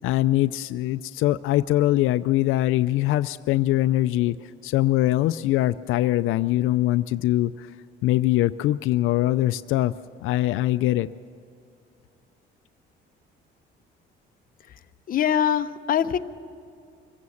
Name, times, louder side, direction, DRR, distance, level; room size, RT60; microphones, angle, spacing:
voice 1, 0.0-4.4 4.6-7.7 8.0-9.9 10.2-11.1, left 15 dB, 80° left, 12 dB, 0.4 m, -22 dB
voice 2, 14.6-16.2, left 9 dB, 45° left, 9 dB, 0.7 m, -24 dB
24.5 x 16.0 x 7.1 m, 2.5 s
cardioid pair, 145°, 21 cm